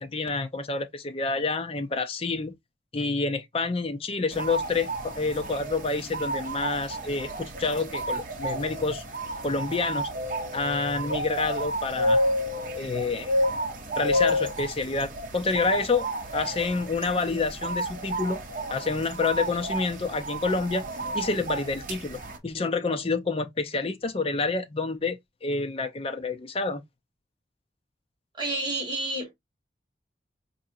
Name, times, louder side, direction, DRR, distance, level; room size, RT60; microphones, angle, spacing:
voice 1, 0.0-2.5 2.9-9.0 9.4-10.1 10.5-12.2 12.8-13.3 14.0-16.1 16.3-18.4 18.7-20.9 21.1-26.8, left 3 dB, 30° left, 0.5 m, -28 dB
sound 1, 4.3-22.4, equal, 45° right, 0.8 m, -31 dB
voice 2, 28.4-29.3, right 2 dB, 25° right, 1.5 m, -30 dB
4.7 x 2.6 x 2.6 m
head